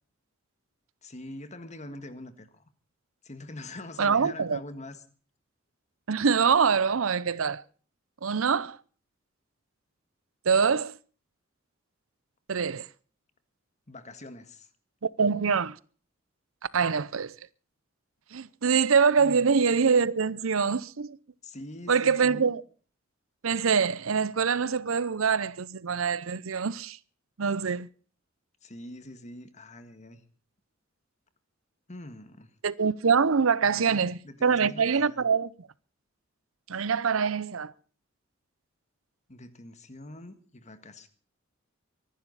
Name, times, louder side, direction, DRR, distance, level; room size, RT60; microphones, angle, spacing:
voice 1, 1.0-2.6 3.2-5.0 13.9-14.7 19.2-19.5 21.4-22.5 28.6-30.2 31.9-32.5 33.6-35.3 39.3-41.1, left 1 dB, 35° left, 1.7 m, -44 dB
voice 2, 4.0-4.6 6.1-7.6 8.2-8.8 10.5-11.0 12.5-12.9 15.0-15.8 16.7-17.3 18.3-21.2 21.9-22.6 23.4-27.0 27.4-27.9 32.6-35.5 36.7-37.7, right 5 dB, 80° right, 0.7 m, -24 dB
24.0 x 11.5 x 4.1 m
head